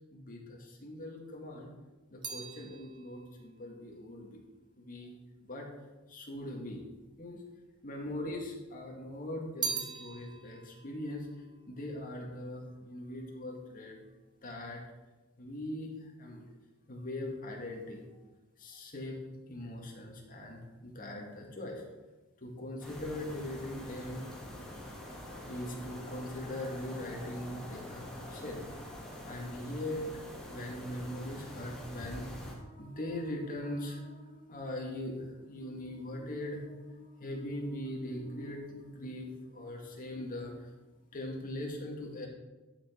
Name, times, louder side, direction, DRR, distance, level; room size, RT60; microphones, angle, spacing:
voice 1, 0.1-1.7 2.1-4.4 4.8-5.1 5.4-5.7 6.1-6.8 7.2-7.4 7.8-14.1 14.4-14.8 15.4-16.4 16.9-18.0 18.6-19.2 19.5-21.8 22.4-24.3 25.5-28.6 29.3-30.1 30.5-40.7 41.1-42.3, left 1 dB, 40° left, 0 dB, 2.0 m, -41 dB
sound 1, 1.3-5.7 6.5-7.3 7.6-8.7 9.0-12.6 12.8-13.4, right 5 dB, 20° right, 0.7 m, -43 dB
sound 2, 22.8-32.5, left 1 dB, ahead, 2.6 m, -45 dB
11.5 x 6.2 x 4.5 m, 1.1 s
head